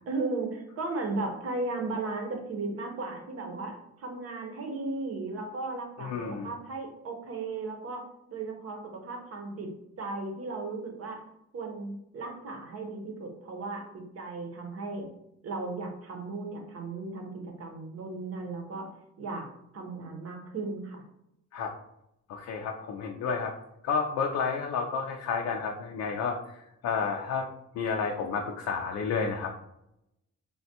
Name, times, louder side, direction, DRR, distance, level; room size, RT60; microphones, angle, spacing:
voice 1, 0.1-9.7 10.0-11.2 11.5-15.1 15.4-18.9 19.2-21.0, right 3 dB, 50° right, 3 dB, 0.8 m, -36 dB
voice 2, 6.0-6.5 21.5-21.7 22.3-23.5 23.8-27.5 27.7-29.5, left 5 dB, 65° left, 1 dB, 0.4 m, -31 dB
3.4 x 2.2 x 2.7 m, 0.81 s
cardioid pair, 90°, 30 cm